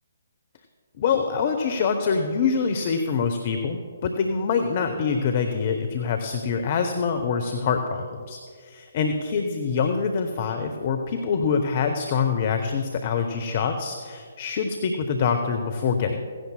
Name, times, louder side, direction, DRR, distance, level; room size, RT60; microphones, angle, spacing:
voice 1, 1.0-16.3, left 5 dB, 35° left, 6 dB, 0.7 m, -25 dB
16.0 x 16.0 x 2.2 m, 2.1 s
figure-of-eight pair, 135°, 0 cm